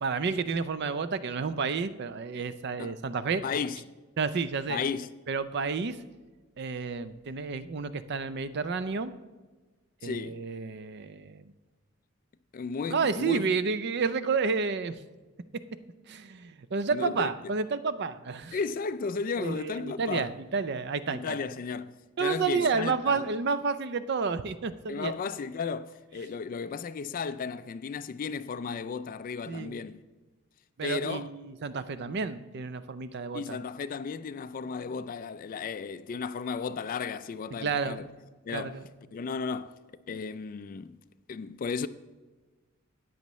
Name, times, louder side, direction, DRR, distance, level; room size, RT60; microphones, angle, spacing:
voice 1, 0.0-3.4 4.2-4.8 5.3-6.0 6.6-9.1 10.0-11.4 12.9-15.0 16.1-18.6 19.4-21.4 22.2-25.1 29.5-29.8 30.8-33.6 37.6-38.1 38.5-38.8, right 5 dB, 50° right, 0.4 m, -30 dB
voice 2, 3.4-3.8 4.7-5.1 10.0-10.4 12.5-13.5 16.9-17.3 18.5-20.3 21.1-21.9 22.2-23.3 24.9-30.0 30.8-31.3 33.3-38.1 38.5-38.8 39.1-39.7 40.1-41.0 41.3-41.9, left 5 dB, 40° left, 0.3 m, -34 dB
13.5 x 9.2 x 3.1 m
head